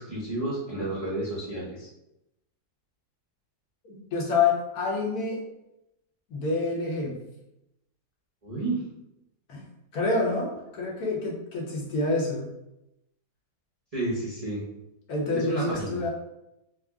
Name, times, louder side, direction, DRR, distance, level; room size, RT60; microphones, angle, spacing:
voice 1, 0.0-1.9 8.4-8.8 13.9-14.6 15.3-16.0, right 2 dB, 35° right, -8 dB, 0.6 m, -31 dB
voice 2, 3.8-5.4 6.3-7.2 9.5-9.6 9.9-12.5 15.1-16.1, left 3 dB, 65° left, -3 dB, 1.4 m, -27 dB
3.6 x 2.1 x 3.5 m, 0.88 s
omnidirectional pair, 1.8 m